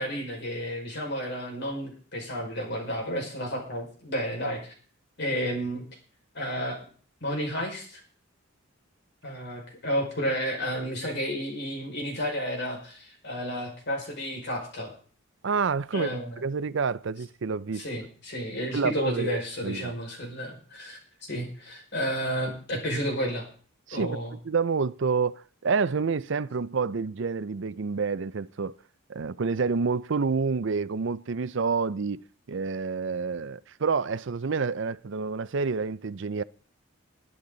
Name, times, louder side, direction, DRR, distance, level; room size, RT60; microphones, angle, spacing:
voice 1, 0.0-4.7 5.2-5.9 6.3-6.9 7.2-8.0 9.2-14.9 15.9-16.4 17.7-23.5 23.9-24.4, equal, 55° left, 5.5 m, -32 dB
voice 2, 15.4-16.1 16.4-17.8 18.7-19.9 23.9-24.2 24.4-28.7 29.1-32.2 32.5-36.4, right 5 dB, 60° right, 0.5 m, -28 dB
21.5 x 10.0 x 4.0 m
head